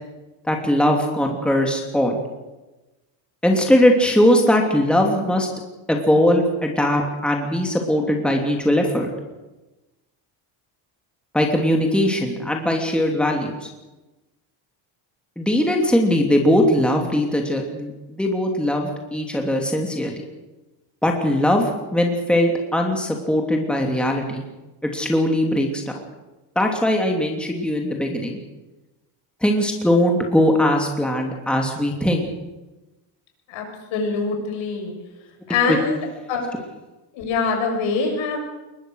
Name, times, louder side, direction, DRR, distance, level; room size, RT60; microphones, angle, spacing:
voice 1, 0.4-2.2 3.4-5.5 5.9-9.1 11.3-13.7 15.4-20.1 21.0-24.4 24.8-25.8 26.5-28.4 29.4-32.2, left 1 dB, ahead, 1 dB, 3.0 m, -20 dB
voice 2, 33.9-34.9 35.5-36.0 36.3-36.5 37.1-38.4, left 4 dB, 70° left, 2 dB, 7.2 m, -23 dB
22.0 x 20.5 x 6.5 m, 1.1 s
cardioid pair, 130°, 48 cm